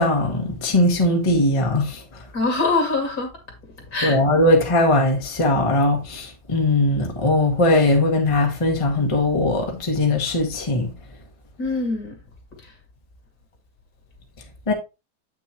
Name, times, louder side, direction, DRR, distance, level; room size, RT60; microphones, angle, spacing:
voice 1, 0.0-2.0 4.0-10.9 14.7-14.8, left 2 dB, 20° left, 1.2 m, -20 dB
voice 2, 2.3-3.4 3.8-4.2 11.6-12.2 12.6-12.7, left 3 dB, 60° left, 2.8 m, -24 dB
8.2 x 6.2 x 3.0 m
omnidirectional pair, 1.8 m